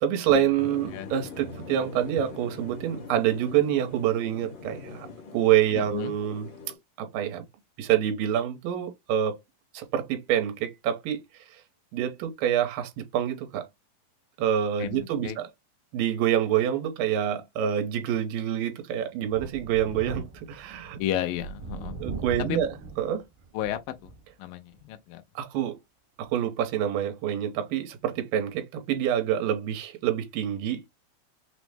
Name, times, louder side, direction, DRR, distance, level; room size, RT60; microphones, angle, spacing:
voice 1, 0.0-5.1 5.3-6.5 7.0-7.4 7.8-9.4 9.7-11.2 11.5-11.6 11.9-13.7 14.4-15.5 15.9-21.0 22.0-22.7 23.0-23.2 25.4-25.8 26.2-30.9, right 10 dB, 80° right, 2.5 m, -27 dB
sound 1, 0.6-6.8, left 4 dB, 60° left, 1.2 m, -42 dB
voice 2, 5.8-6.1 14.8-15.4 21.0-22.0 22.5-22.6 23.5-24.1 24.4-25.2, left 11 dB, 90° left, 2.3 m, -32 dB
Thunder, 19.3-24.3 24.8-24.9 26.2-26.3, right 4 dB, 60° right, 1.3 m, -40 dB
5.9 x 2.0 x 3.3 m
omnidirectional pair, 4.0 m